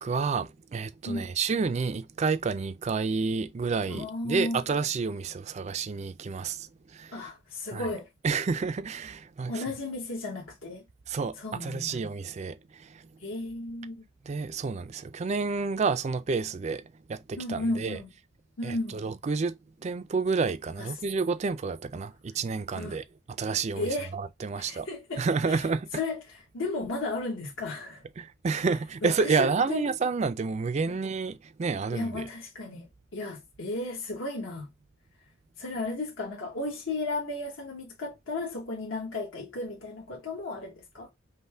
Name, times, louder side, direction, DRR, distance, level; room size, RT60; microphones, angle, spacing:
voice 1, 0.0-7.3 7.7-7.9 8.2-9.6 11.1-13.1 14.2-18.0 18.6-24.9 25.2-25.9 28.2-32.3, right 4 dB, 35° right, 0.3 m, -30 dB
voice 2, 3.9-4.6 7.1-8.1 9.5-10.8 11.4-11.9 13.2-14.0 17.4-18.1 18.6-19.0 20.8-20.9 22.7-23.0 23.8-24.1 24.6-25.7 25.9-28.0 29.0-29.9 30.9-31.0 31.9-34.7 35.6-41.1, left 2 dB, 75° left, 1.2 m, -34 dB
5.4 x 2.2 x 3.3 m
head